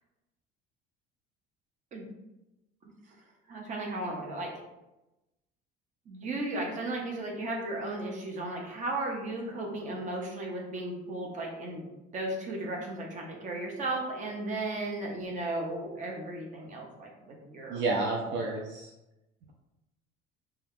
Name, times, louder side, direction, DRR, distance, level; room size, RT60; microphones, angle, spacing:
voice 1, 3.5-4.6 6.1-11.9 12.1-17.8, right 2 dB, 35° right, 0 dB, 0.8 m, -35 dB
voice 2, 17.7-18.9, right 3 dB, 60° right, -1 dB, 0.5 m, -30 dB
2.8 x 2.3 x 3.5 m, 0.97 s
cardioid pair, 135°, 21 cm